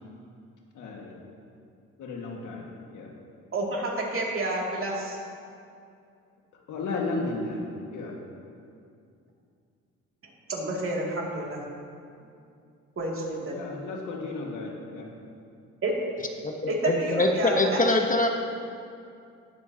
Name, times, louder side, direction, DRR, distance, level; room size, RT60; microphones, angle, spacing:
voice 1, 0.8-1.2 2.0-2.7 2.9-3.1 6.7-7.6 7.9-8.2 13.5-15.1, left 3 dB, 85° left, -1 dB, 1.8 m, -33 dB
voice 2, 3.5-5.2 10.5-11.6 13.0-13.6 15.8-15.9 16.7-17.8, right 2 dB, 45° right, -3 dB, 2.5 m, -30 dB
voice 3, 16.4-18.3, left 2 dB, 25° left, 3 dB, 1.0 m, -24 dB
20.0 x 7.4 x 2.8 m, 2.4 s
cardioid pair, 90°, 30 cm